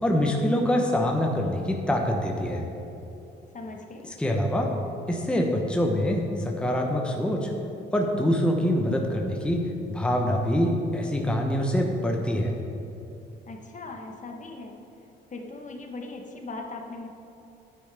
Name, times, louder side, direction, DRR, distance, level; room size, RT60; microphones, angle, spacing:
voice 1, 0.0-2.6 4.2-4.7 5.1-7.5 7.9-9.6 9.9-12.5, equal, 5° left, 1 dB, 1.0 m, -25 dB
voice 2, 3.5-4.1 13.4-14.8 15.3-17.1, left 3 dB, 40° left, 2 dB, 1.1 m, -39 dB
9.9 x 9.3 x 3.5 m, 2.9 s
cardioid pair, 90°, 20 cm